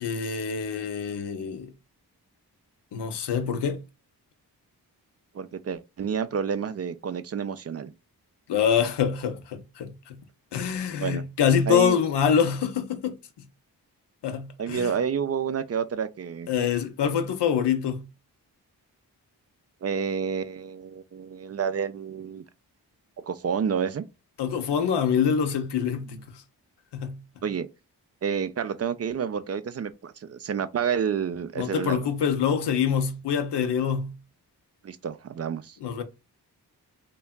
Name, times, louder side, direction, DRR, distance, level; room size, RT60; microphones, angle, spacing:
voice 1, 0.0-1.7 2.9-3.8 8.5-10.2 10.5-13.1 14.2-14.9 16.5-18.1 24.4-26.2 26.9-27.2 31.6-34.2 35.8-36.0, left 7 dB, 80° left, 0.6 m, -25 dB
voice 2, 5.3-7.9 11.0-11.2 11.7-12.0 14.6-16.5 19.8-22.4 23.2-24.0 27.4-27.7 28.2-32.1 34.8-35.8, right 7 dB, 40° right, 0.4 m, -29 dB
3.3 x 2.3 x 2.2 m
cardioid pair, 45°, 41 cm